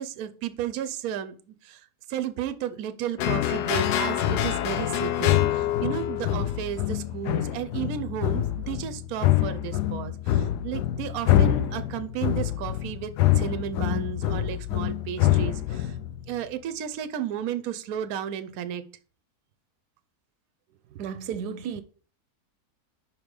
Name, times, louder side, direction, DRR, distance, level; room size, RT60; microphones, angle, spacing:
voice 1, 0.0-16.0 16.3-18.8, right 9 dB, 70° right, 1.1 m, -33 dB
sound 1, 3.2-16.3, left 12 dB, 90° left, 1.2 m, -25 dB
voice 2, 20.9-21.8, right 7 dB, 85° right, 1.2 m, -33 dB
5.5 x 4.8 x 5.2 m
omnidirectional pair, 1.7 m